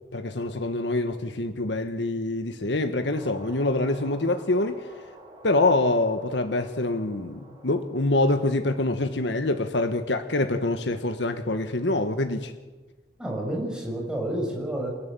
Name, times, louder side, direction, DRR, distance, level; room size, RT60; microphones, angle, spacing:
voice 1, 0.0-5.1 5.4-12.5, left 2 dB, 75° left, 1.3 m, -25 dB
sound 1, 3.0-9.6, right 1 dB, 25° right, 6.8 m, -49 dB
voice 2, 13.2-14.9, right 1 dB, 5° right, 6.3 m, -29 dB
28.5 x 13.0 x 8.9 m
head